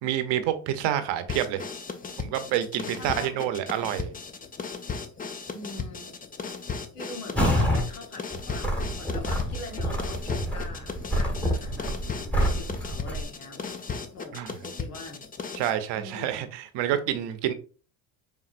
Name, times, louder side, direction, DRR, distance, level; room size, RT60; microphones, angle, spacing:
voice 1, 0.0-1.6 2.2-4.1 14.3-14.5 15.6-17.5, right 11 dB, 65° right, 0.8 m, -28 dB
sound 1, 1.3-15.8, left 5 dB, 20° left, 0.5 m, -36 dB
voice 2, 3.0-3.5 5.5-6.1 6.9-13.6 14.1-15.2 15.9-16.5, left 2 dB, 80° left, 1.4 m, -43 dB
sound 2, 7.4-7.9 8.3-13.2, equal, 5° left, 1.4 m, -27 dB
4.4 x 3.6 x 2.5 m
supercardioid pair, 75°, 45 cm